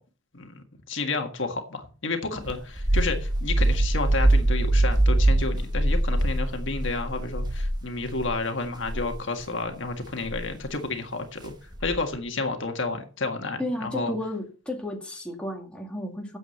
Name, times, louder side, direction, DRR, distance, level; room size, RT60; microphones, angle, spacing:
voice 1, 0.3-11.5 11.8-14.1, left 3 dB, 55° left, 5 dB, 1.7 m, -31 dB
sound 1, 2.5-8.3 8.8-9.1 10.3-10.6 11.8-12.2, right 1 dB, 20° right, 1.2 m, -23 dB
voice 2, 13.6-16.4, left 1 dB, 5° left, 0 dB, 2.1 m, -33 dB
9.6 x 7.6 x 7.2 m, 0.39 s
head